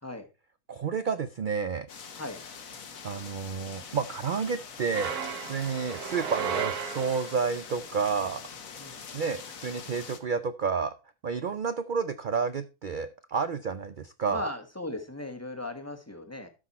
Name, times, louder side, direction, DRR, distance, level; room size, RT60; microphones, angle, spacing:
voice 1, 0.7-1.9 3.0-5.2 5.5-8.4 9.1-10.9 11.2-14.5, right 5 dB, 70° right, 12 dB, 0.4 m, -30 dB
sound 1, 1.9-10.2, left 6 dB, 65° left, 1.6 m, -44 dB
sound 2, 4.9-7.6, right 7 dB, 90° right, 1.8 m, -34 dB
voice 2, 14.3-16.5, left 2 dB, 10° left, 5 dB, 1.3 m, -38 dB
12.5 x 6.1 x 4.2 m, 0.29 s
omnidirectional pair, 1.6 m